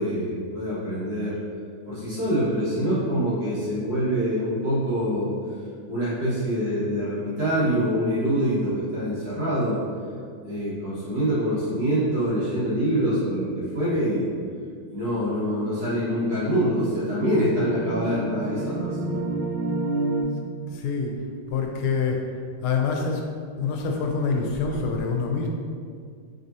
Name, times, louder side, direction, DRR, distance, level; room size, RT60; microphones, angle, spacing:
voice 1, 0.0-1.4 1.9-5.3 5.9-9.8 10.4-14.3 14.9-19.2, equal, 50° right, -10 dB, 1.9 m, -25 dB
sound 1, 15.7-20.2, right 2 dB, 85° right, 1.4 m, -30 dB
voice 2, 20.7-21.2 21.5-22.2 22.6-23.2 23.6-25.5, left 5 dB, 85° left, 1 dB, 1.5 m, -25 dB
4.9 x 3.6 x 2.7 m, 2.1 s
omnidirectional pair, 2.2 m